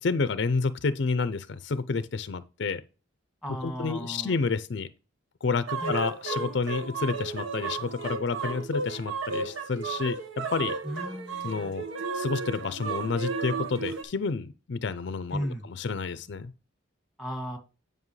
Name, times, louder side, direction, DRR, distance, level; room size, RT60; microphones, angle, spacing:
voice 1, 0.0-2.8 3.6-4.9 5.4-10.7 11.4-11.8 12.1-16.5, left 4 dB, 60° left, 0.5 m, -30 dB
voice 2, 3.4-4.4 5.8-6.0 10.8-11.7 15.3-15.6 17.2-17.6, equal, 5° right, 2.0 m, -35 dB
sound 1, 5.7-14.0, right 4 dB, 80° right, 1.3 m, -33 dB
9.6 x 5.3 x 3.2 m
head